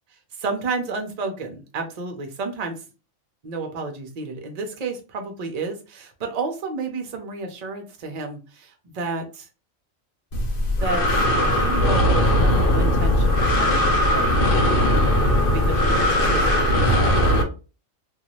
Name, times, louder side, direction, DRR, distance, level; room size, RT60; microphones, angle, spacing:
voice 1, 0.3-2.8 3.4-9.5 10.8-14.4 15.4-17.2, right 3 dB, 40° right, 3 dB, 0.6 m, -31 dB
Breathing, 10.3-17.4, equal, 50° left, 0.7 m, -19 dB
2.6 x 2.3 x 3.0 m, 0.33 s
omnidirectional pair, 1.4 m